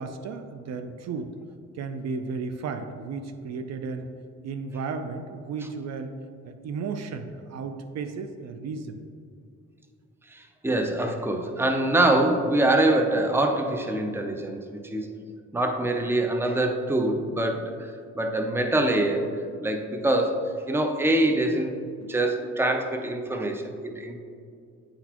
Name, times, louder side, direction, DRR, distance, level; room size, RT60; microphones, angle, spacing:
voice 1, 0.0-1.3 1.7-4.1 4.4-6.2 6.4-9.0, right 4 dB, 60° right, 8 dB, 0.5 m, -34 dB
voice 2, 10.3-15.1 15.5-17.7 18.1-21.7 22.1-24.2, right 1 dB, 10° right, 5 dB, 0.5 m, -24 dB
9.1 x 4.0 x 2.9 m, 2.3 s
cardioid pair, 90°, 30 cm